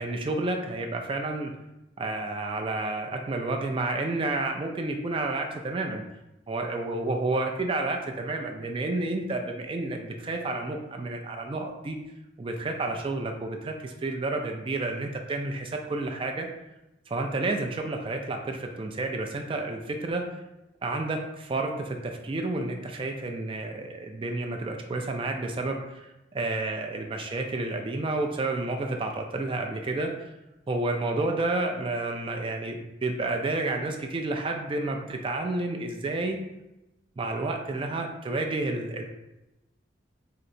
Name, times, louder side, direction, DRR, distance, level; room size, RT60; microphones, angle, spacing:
voice 1, 0.0-1.5 2.0-6.0 6.5-12.0 12.4-16.5 17.1-20.2 20.8-30.1 30.7-36.4 37.2-39.0, right 2 dB, 30° right, 3 dB, 0.3 m, -30 dB
4.2 x 2.8 x 2.6 m, 0.94 s
head